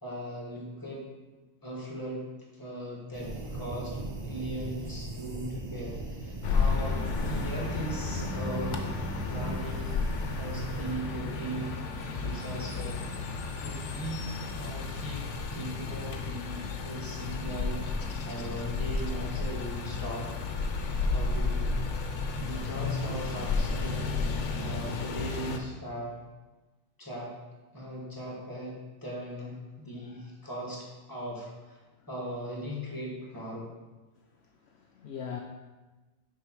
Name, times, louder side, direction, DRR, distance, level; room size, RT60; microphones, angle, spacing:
voice 1, 0.0-1.1 1.6-9.9 10.4-11.8 12.2-13.0 13.6-14.3 14.6-20.3 21.0-21.8 22.4-26.1 27.0-27.3 27.7-33.7, right 1 dB, 15° left, -4 dB, 1.8 m, -39 dB
sound 1, 3.1-10.9, right 1 dB, 25° right, 0.7 m, -38 dB
sound 2, 6.4-25.6, left 4 dB, 85° left, 1.1 m, -32 dB
voice 2, 34.3-35.4, left 7 dB, 65° left, 2 dB, 0.8 m, -42 dB
6.7 x 5.5 x 4.7 m, 1.2 s
omnidirectional pair, 1.2 m